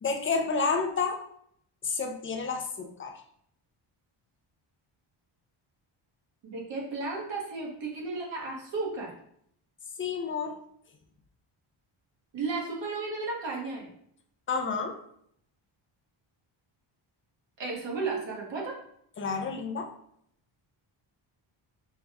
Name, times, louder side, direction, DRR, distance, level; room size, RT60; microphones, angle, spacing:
voice 1, 0.0-1.2 1.8-3.1 10.0-10.6 14.5-15.0 19.2-19.9, left 4 dB, 25° left, 4 dB, 0.5 m, -30 dB
voice 2, 6.4-9.1 12.3-13.9 17.6-18.8, right 3 dB, 60° right, -2 dB, 1.4 m, -34 dB
5.3 x 2.3 x 3.4 m, 0.70 s
wide cardioid pair, 140°, 49 cm